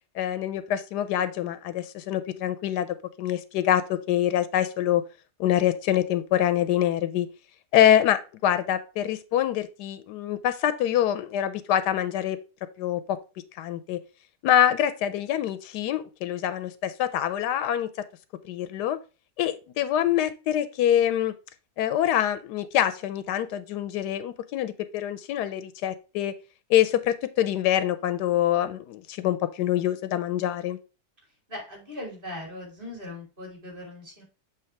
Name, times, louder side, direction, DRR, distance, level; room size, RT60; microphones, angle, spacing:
voice 1, 0.2-2.9 3.2-5.0 5.4-7.3 7.7-12.4 12.8-13.2 13.6-14.0 14.4-17.9 18.5-19.0 19.4-21.3 21.8-26.3 26.7-30.8, left 11 dB, 80° left, 13 dB, 1.2 m, -25 dB
voice 2, 31.5-34.2, left 1 dB, 30° right, -1 dB, 3.1 m, -39 dB
7.0 x 3.1 x 4.5 m, 0.31 s
omnidirectional pair, 1.7 m